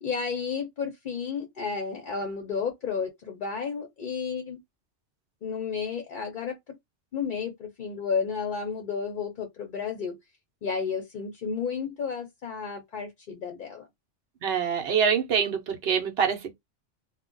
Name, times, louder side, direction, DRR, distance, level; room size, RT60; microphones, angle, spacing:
voice 1, 0.0-4.6 5.4-6.8 7.1-10.2 10.6-13.9, left 6 dB, 50° left, 0.7 m, -32 dB
voice 2, 14.4-16.5, right 7 dB, 60° right, 0.9 m, -25 dB
2.3 x 2.2 x 3.7 m
omnidirectional pair, 1.2 m